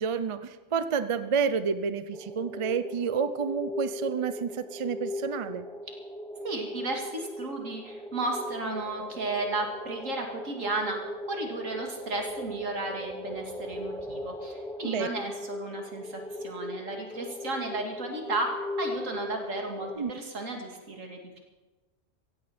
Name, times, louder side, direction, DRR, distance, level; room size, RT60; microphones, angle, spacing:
voice 1, 0.0-5.7 14.8-15.1 20.0-20.1, right 6 dB, 40° right, 12 dB, 0.4 m, -29 dB
sound 1, 2.1-20.0, left 1 dB, 5° left, 0.9 m, -38 dB
voice 2, 6.4-11.0 11.3-21.4, right 2 dB, 80° right, 2 dB, 2.6 m, -34 dB
16.0 x 15.5 x 4.4 m, 1.2 s
omnidirectional pair, 1.3 m